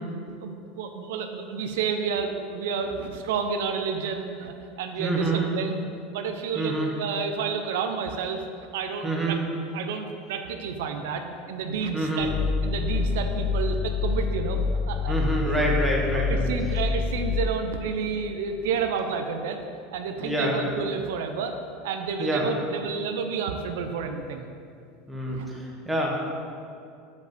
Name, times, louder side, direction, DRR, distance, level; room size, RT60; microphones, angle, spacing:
voice 1, 0.4-5.8 6.1-8.4 8.7-9.4 9.7-12.3 12.6-14.6 14.9-15.2 15.4-15.5 16.1-19.6 19.9-21.5 21.8-24.5 25.3-25.5, right 6 dB, 85° right, 6 dB, 0.5 m, -30 dB
voice 2, 5.0-5.5 6.5-6.9 9.0-9.4 11.9-12.3 15.1-16.5 20.2-20.6 22.2-22.4 25.1-26.2, right 1 dB, 5° right, -2 dB, 1.1 m, -26 dB
sound 1, 12.2-17.5, left 5 dB, 45° left, 0.5 m, -27 dB
5.3 x 5.2 x 6.0 m, 2.4 s
supercardioid pair, 150°, 0 cm